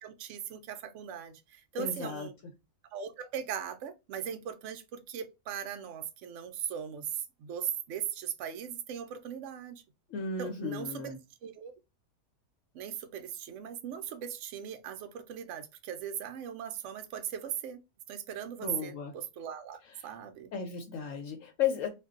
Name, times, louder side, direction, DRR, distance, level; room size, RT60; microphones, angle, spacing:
voice 1, 0.0-2.3 2.9-9.8 10.4-11.1 11.4-11.7 12.7-17.8 18.1-20.5, right 9 dB, 65° right, 0.7 m, -39 dB
voice 2, 1.8-2.3 10.1-11.2 18.6-19.1 19.8-20.0 20.5-21.9, left 7 dB, 65° left, 0.8 m, -34 dB
2.5 x 2.2 x 3.6 m
omnidirectional pair, 1.7 m